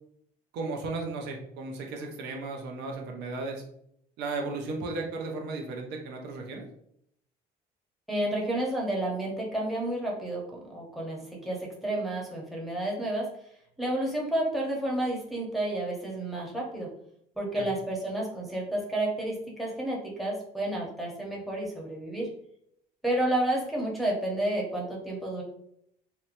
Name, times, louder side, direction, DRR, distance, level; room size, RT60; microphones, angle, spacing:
voice 1, 0.5-3.6 4.2-6.6 17.5-17.7, right 3 dB, 80° right, 1 dB, 0.6 m, -35 dB
voice 2, 8.1-13.3 13.8-16.9 17.4-22.3 23.0-25.4, right 1 dB, ahead, -4 dB, 0.8 m, -30 dB
2.9 x 2.1 x 2.5 m, 0.71 s
cardioid pair, 110°, 17 cm